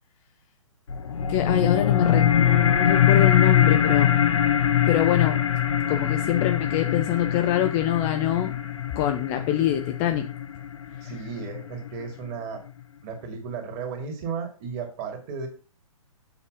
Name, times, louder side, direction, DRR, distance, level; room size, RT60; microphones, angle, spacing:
sound 1, 0.9-11.9, left 10 dB, 60° left, 0.9 m, -22 dB
voice 1, 1.3-4.1 4.9-5.4 5.9-8.5 8.9-10.3, left 11 dB, 20° left, 6 dB, 0.5 m, -24 dB
voice 2, 11.0-12.6 13.0-15.5, right 5 dB, 30° right, 4 dB, 2.3 m, -34 dB
7.5 x 5.4 x 5.2 m, 0.36 s
figure-of-eight pair, 125°, 18 cm